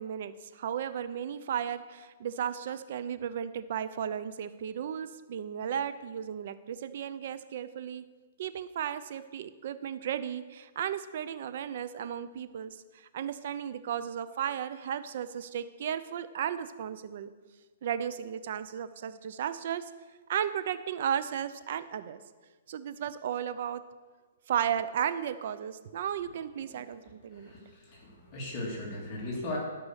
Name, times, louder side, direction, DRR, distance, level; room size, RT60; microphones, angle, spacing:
voice 1, 0.0-8.1 8.4-17.3 17.8-19.9 20.3-22.2 22.7-23.8 24.5-27.5, right 9 dB, 55° right, 13 dB, 0.6 m, -34 dB
voice 2, 27.3-29.6, left 1 dB, 25° left, -4 dB, 2.9 m, -38 dB
12.5 x 5.5 x 6.5 m, 1.3 s
hypercardioid pair, 155°, 0 cm